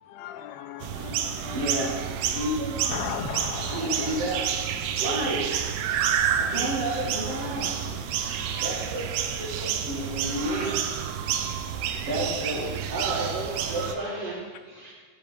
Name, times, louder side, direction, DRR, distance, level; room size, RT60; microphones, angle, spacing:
voice 1, 0.0-1.8 2.9-4.5, left 9 dB, 85° left, 8 dB, 3.0 m, -37 dB
sound 1, 0.8-13.9, right 8 dB, 85° right, 2.4 m, -29 dB
voice 2, 1.5-1.9 2.3-2.8 3.7-4.4 5.0-5.4 6.5-7.7 8.2-10.7 12.1-14.4, right 1 dB, 50° right, -7 dB, 1.9 m, -31 dB
voice 3, 6.1-6.7 7.5-7.7 10.4-10.7 11.2-11.4 13.4-14.9, left 1 dB, 30° left, -8 dB, 2.5 m, -45 dB
12.0 x 9.8 x 3.7 m, 1.5 s
omnidirectional pair, 5.5 m